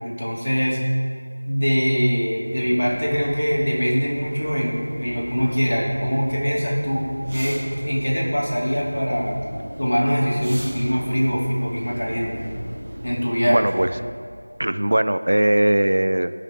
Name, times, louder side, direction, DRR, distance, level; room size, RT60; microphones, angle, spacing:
voice 1, 0.0-0.8 1.5-9.4 9.8-12.5 13.0-13.6, equal, 70° left, -4 dB, 2.9 m, -23 dB
sound 1, 2.4-14.0, equal, 30° right, 2.2 m, -37 dB
voice 2, 13.5-13.9 14.6-16.3, right 1 dB, 45° right, 12 dB, 0.3 m, -19 dB
18.0 x 6.5 x 3.7 m, 2.2 s
figure-of-eight pair, 175°, 0 cm